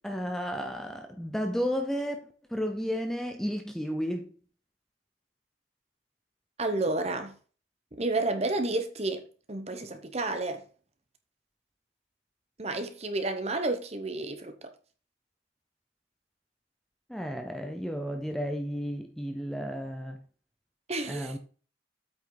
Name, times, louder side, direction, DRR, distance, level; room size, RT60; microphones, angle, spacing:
voice 1, 0.0-4.3 17.1-20.2 21.1-21.4, equal, ahead, 0.6 m, -33 dB
voice 2, 6.6-7.3 8.0-9.2 9.5-10.6 12.6-14.7 20.9-21.4, right 2 dB, 35° right, 1.1 m, -31 dB
8.3 x 6.0 x 4.0 m
head